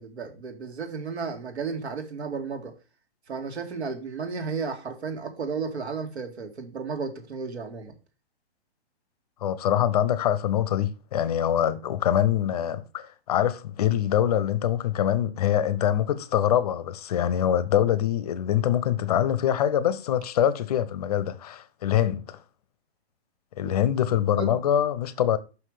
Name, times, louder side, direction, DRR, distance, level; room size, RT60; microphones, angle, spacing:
voice 1, 0.0-2.7 3.3-7.9 23.6-23.7 24.4-24.6, right 5 dB, 80° right, 2.2 m, -33 dB
voice 2, 9.4-22.4 23.6-25.4, left 10 dB, 35° left, 0.6 m, -24 dB
5.8 x 5.7 x 4.9 m
hypercardioid pair, 155°, 33 cm